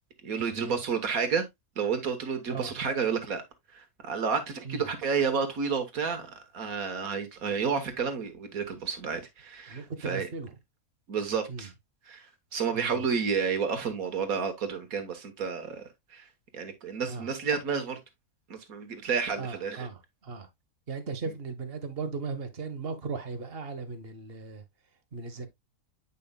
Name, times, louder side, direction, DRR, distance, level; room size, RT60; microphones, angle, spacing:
voice 1, 0.2-1.5 1.8-3.4 3.7-10.3 11.1-11.7 12.1-12.3 12.5-15.8 16.1-16.3 16.5-18.0 18.5-19.9, right 6 dB, 70° right, 1.7 m, -30 dB
voice 2, 9.7-10.5 11.5-11.7 12.7-13.1 17.1-17.3 19.4-20.5 20.9-24.6 25.1-25.5, right 4 dB, 45° right, 1.1 m, -37 dB
8.4 x 5.4 x 2.3 m
omnidirectional pair, 1.6 m